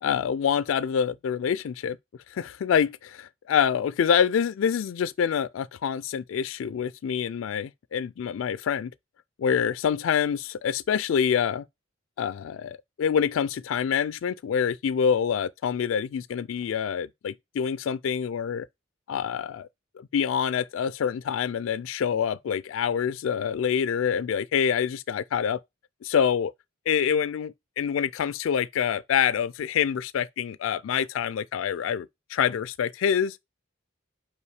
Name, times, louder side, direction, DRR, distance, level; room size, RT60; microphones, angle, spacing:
voice 1, 0.0-2.0 2.3-8.9 9.4-11.6 12.2-18.7 19.1-19.7 20.0-25.6 26.0-26.5 26.9-33.4, left 7 dB, 85° left, 0.3 m, -26 dB
5.6 x 4.8 x 4.7 m
head